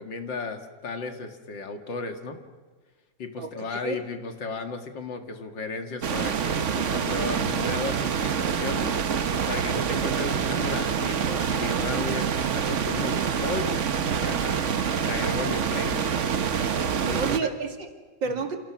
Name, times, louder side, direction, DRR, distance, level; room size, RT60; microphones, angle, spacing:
voice 1, 0.0-2.4 3.2-9.0 9.5-14.6 15.0-16.3 17.0-17.5 18.2-18.3, left 4 dB, 85° left, 6 dB, 2.8 m, -35 dB
voice 2, 3.4-4.0 17.2-18.6, right 4 dB, 85° right, 5 dB, 3.0 m, -31 dB
sound 1, 6.0-17.4, right 7 dB, 50° right, 1.2 m, -26 dB
29.0 x 28.0 x 6.1 m, 1.4 s
omnidirectional pair, 2.0 m